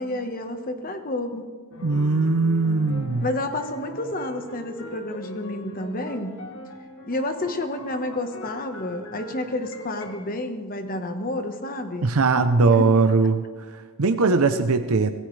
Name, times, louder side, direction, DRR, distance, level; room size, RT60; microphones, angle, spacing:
voice 1, 0.0-1.5 3.2-6.4 7.1-12.1 12.7-12.8 14.3-14.6, left 1 dB, 40° left, 7 dB, 1.2 m, -30 dB
sound 1, 1.7-10.3, left 1 dB, 60° left, 1.9 m, -40 dB
voice 2, 1.8-3.3 12.0-13.4 13.7-15.1, right 4 dB, 75° right, 7 dB, 0.7 m, -20 dB
24.5 x 15.5 x 3.3 m, 1.5 s
head